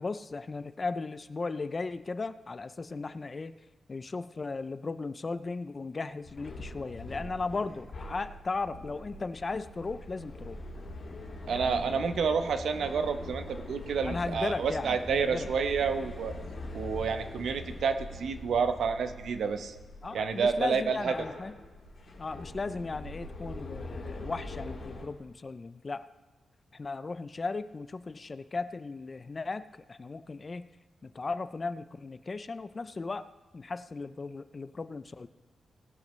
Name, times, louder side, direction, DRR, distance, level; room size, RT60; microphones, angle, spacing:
voice 1, 0.0-3.5 3.9-10.6 11.5-12.1 14.0-15.5 20.0-21.5 22.2-26.1 26.7-30.6 31.0-33.3 33.5-35.3, left 3 dB, 30° left, 13 dB, 0.3 m, -36 dB
sound 1, 6.2-25.0, left 2 dB, 50° left, 3.4 m, -43 dB
voice 2, 11.5-16.3 16.7-19.8 20.1-21.1, right 5 dB, 75° right, 9 dB, 0.8 m, -29 dB
18.5 x 10.5 x 3.1 m, 1.3 s
wide cardioid pair, 155°, 0 cm